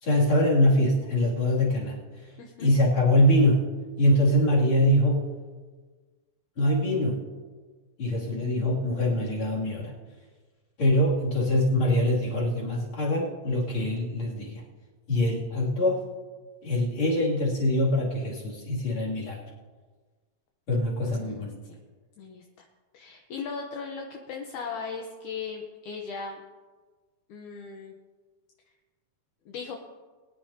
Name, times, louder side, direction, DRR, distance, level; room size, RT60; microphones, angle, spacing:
voice 1, 0.0-2.0 2.6-3.7 4.0-5.3 6.6-7.2 8.0-9.9 10.8-14.6 15.1-16.0 16.6-19.4 20.7-21.5, left 1 dB, 35° left, -5 dB, 3.2 m, -23 dB
voice 2, 2.4-2.7 21.1-21.8 22.2-22.4 22.9-26.4 27.3-27.9 29.5-29.8, left 5 dB, 70° left, 1 dB, 2.0 m, -38 dB
21.5 x 10.5 x 2.8 m, 1.4 s
omnidirectional pair, 4.3 m